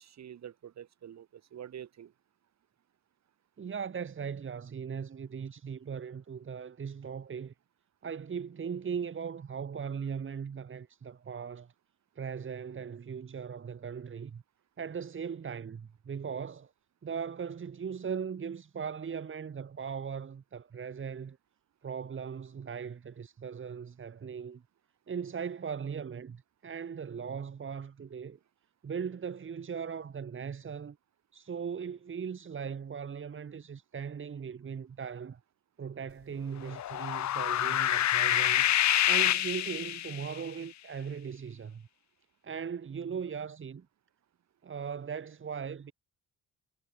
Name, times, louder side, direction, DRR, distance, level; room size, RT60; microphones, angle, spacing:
voice 1, 0.0-2.1, right 9 dB, 60° right, 5.5 m, -47 dB
voice 2, 3.6-7.5 8.0-11.7 12.2-14.4 14.8-16.7 17.0-21.4 21.8-24.6 25.1-28.4 28.8-31.0 31.3-35.4 35.8-38.7 39.1-41.9 42.4-43.9 44.6-45.9, right 6 dB, 40° right, 2.7 m, -39 dB
sound 1, 36.7-40.4, left 12 dB, 65° left, 1.3 m, -27 dB
cardioid pair, 90°, 30 cm